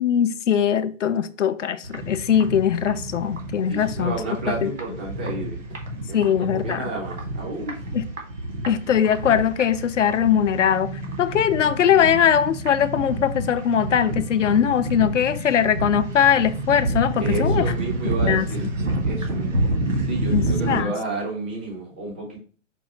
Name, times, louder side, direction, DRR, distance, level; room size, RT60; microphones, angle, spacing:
voice 1, 0.0-4.2 4.6-4.7 6.1-6.8 7.9-8.0 8.7-10.9 11.2-17.6 18.3-18.5 20.3-20.9, left 9 dB, 70° left, 0.6 m, -21 dB
sound 1, 1.8-20.8, right 2 dB, 85° right, 1.4 m, -28 dB
voice 2, 3.7-5.6 6.1-7.7 17.2-19.7 20.0-22.4, right 2 dB, 10° right, 0.3 m, -31 dB
5.3 x 2.5 x 4.0 m
figure-of-eight pair, 120°, 38 cm